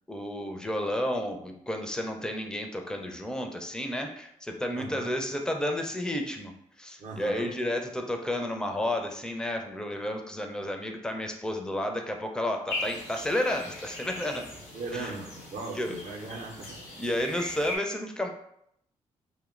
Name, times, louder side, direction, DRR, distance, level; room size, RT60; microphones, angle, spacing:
voice 1, 0.1-6.5 6.8-14.5 14.9-15.1 15.7-16.0 17.0-18.3, left 1 dB, 5° left, 4 dB, 0.4 m, -31 dB
voice 2, 4.7-5.1 7.0-7.6 14.7-16.9, right 3 dB, 50° right, 0 dB, 0.6 m, -38 dB
sound 1, 12.7-17.8, left 2 dB, 85° left, 0.6 m, -39 dB
2.7 x 2.0 x 2.4 m, 0.73 s
hypercardioid pair, 40°, 16 cm